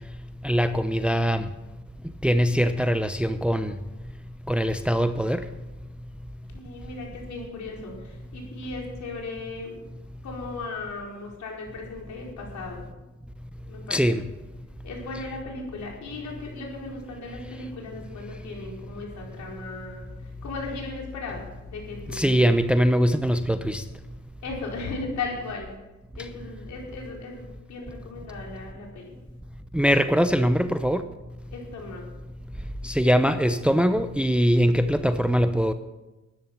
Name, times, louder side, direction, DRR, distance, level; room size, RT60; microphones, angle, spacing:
voice 1, 0.4-1.5 2.2-3.7 4.5-5.4 13.9-14.2 22.1-23.8 29.7-31.0 32.8-35.7, equal, 5° right, 10 dB, 0.7 m, -22 dB
voice 2, 6.5-9.8 10.2-12.9 13.7-14.0 14.8-22.4 24.4-25.7 26.2-29.1 31.5-32.1, left 3 dB, 70° left, -1 dB, 4.7 m, -37 dB
13.0 x 10.5 x 6.2 m, 1.1 s
cardioid pair, 90°, 30 cm